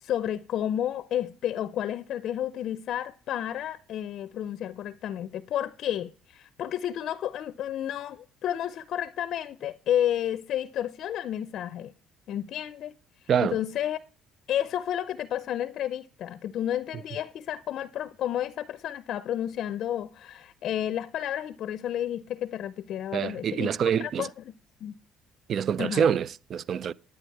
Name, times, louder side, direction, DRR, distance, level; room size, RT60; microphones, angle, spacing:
voice 1, 0.0-11.9 12.3-12.9 13.4-14.0 14.5-24.3 24.8-24.9 25.8-26.2, left 11 dB, 60° left, 0.5 m, -31 dB
voice 2, 23.1-24.3 25.5-26.9, right 8 dB, 50° right, 0.4 m, -26 dB
11.0 x 8.8 x 4.6 m
cardioid pair, 115°, 0 cm